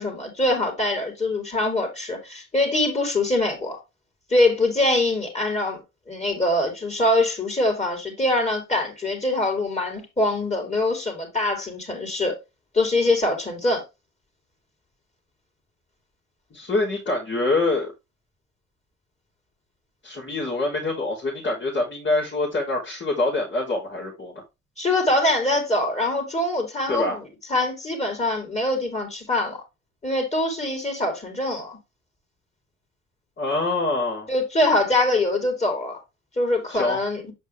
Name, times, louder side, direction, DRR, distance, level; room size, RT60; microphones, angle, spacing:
voice 1, 0.0-3.8 4.3-5.8 6.1-12.4 12.7-13.8 24.8-27.2 27.5-29.6 30.0-31.8 34.3-36.0 36.4-37.3, left 2 dB, 20° left, 3.9 m, -23 dB
voice 2, 16.5-17.9 20.0-24.3 26.9-27.2 33.4-34.3 36.7-37.0, left 2 dB, 40° left, 3.6 m, -25 dB
7.6 x 5.2 x 3.4 m
cardioid pair, 90°, 30 cm